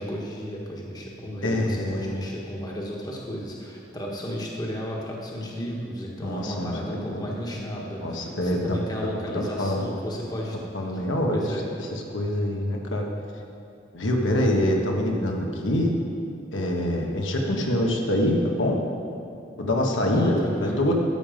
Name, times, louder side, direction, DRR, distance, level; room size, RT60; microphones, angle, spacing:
voice 1, 0.0-10.6 10.9-11.0 11.3-11.7 17.4-17.7 20.1-20.8, equal, 20° left, -2 dB, 1.3 m, -34 dB
voice 2, 1.4-2.3 6.2-7.3 7.5-7.6 8.0-8.8 9.3-9.9 10.7-11.4 12.1-13.1 13.9-15.9 16.5-18.8 19.6-20.9, left 1 dB, 90° left, 0 dB, 1.4 m, -25 dB
12.5 x 7.5 x 5.1 m, 2.6 s
head